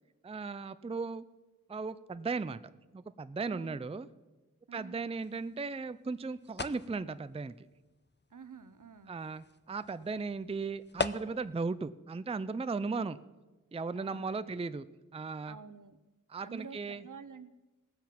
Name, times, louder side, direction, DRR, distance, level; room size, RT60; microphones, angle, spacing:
voice 1, 0.2-1.2 1.7-2.6 2.9-4.1 4.7-7.5 9.1-13.2 13.7-14.9 15.1-15.6 16.3-17.0, right 4 dB, 20° right, 14 dB, 0.4 m, -36 dB
voice 2, 3.5-3.8 4.7-5.0 8.3-9.2 14.0-14.5 15.5-16.0 16.4-17.5, right 5 dB, 65° right, 14 dB, 0.7 m, -49 dB
sound 1, 5.2-11.6, left 4 dB, 30° left, 0.6 m, -43 dB
18.5 x 7.4 x 5.8 m, 1.2 s
wide cardioid pair, 45°, 34 cm